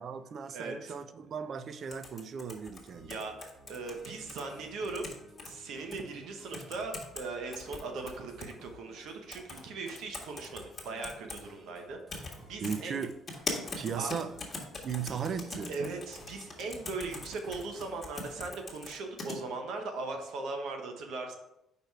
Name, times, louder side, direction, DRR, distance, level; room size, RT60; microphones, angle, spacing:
voice 1, 0.0-3.1 12.6-13.1 13.8-14.3 14.8-15.8, right 6 dB, 50° right, 0.5 m, -36 dB
voice 2, 0.5-1.0 3.1-5.1 5.4-13.0 14.0-14.1 15.7-21.3, right 3 dB, 75° right, 1.0 m, -39 dB
sound 1, 1.9-4.4 4.8-5.5 5.9-6.0 6.5-7.2 7.5-8.5 9.3-9.6 9.9-11.4 12.1-12.3 12.6-19.4, left 3 dB, 30° left, 1.6 m, -41 dB
sound 2, 2.9-18.1, equal, 30° right, 1.7 m, -56 dB
5.1 x 4.6 x 4.6 m
cardioid pair, 105°, 0 cm